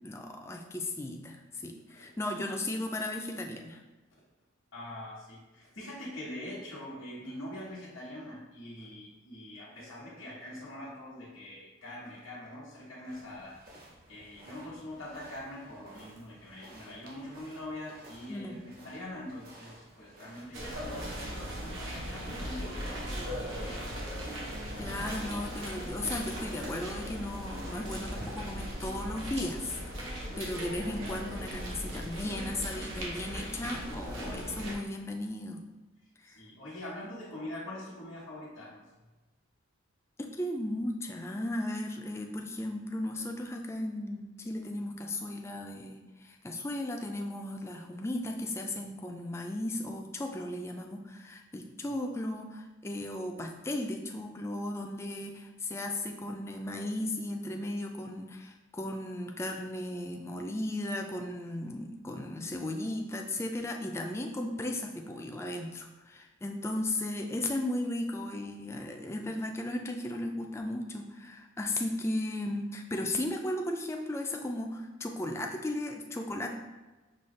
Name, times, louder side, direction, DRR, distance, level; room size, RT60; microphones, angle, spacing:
voice 1, 0.0-3.8 18.3-18.6 24.8-35.6 36.2-36.4 40.2-76.5, left 1 dB, 15° left, 2 dB, 0.3 m, -36 dB
voice 2, 4.7-13.6 14.1-24.1 36.2-38.8, left 1 dB, 75° left, -9 dB, 1.1 m, -44 dB
sound 1, 13.1-28.8, right 1 dB, 45° right, 0.8 m, -53 dB
sound 2, 20.5-34.8, equal, 70° right, 0.9 m, -38 dB
5.4 x 2.3 x 3.2 m, 1.1 s
head